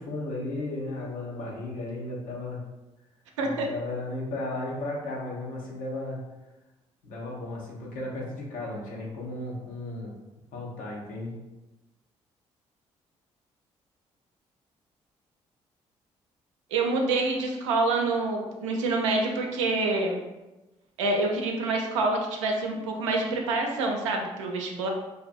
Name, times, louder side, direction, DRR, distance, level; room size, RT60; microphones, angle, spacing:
voice 1, 0.0-2.6 3.4-6.2 7.0-10.1 10.5-11.3, left 2 dB, 65° left, -3 dB, 0.7 m, -35 dB
voice 2, 16.7-20.2 21.0-24.9, right 3 dB, 85° right, 1 dB, 0.4 m, -27 dB
2.5 x 2.4 x 2.4 m, 1.0 s
hypercardioid pair, 45°, 15 cm